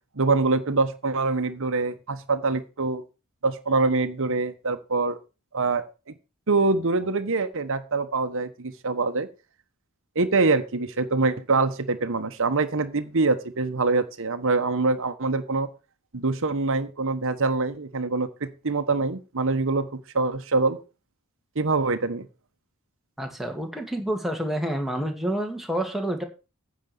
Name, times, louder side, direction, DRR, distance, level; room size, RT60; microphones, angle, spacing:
voice 1, 0.2-3.0 3.4-5.2 5.5-5.9 6.5-9.3 10.1-15.7 16.1-20.8 21.5-22.3, right 3 dB, 65° right, 8 dB, 1.2 m, -24 dB
voice 2, 23.2-26.2, right 1 dB, ahead, 2 dB, 2.2 m, -28 dB
9.6 x 6.3 x 7.0 m, 0.31 s
head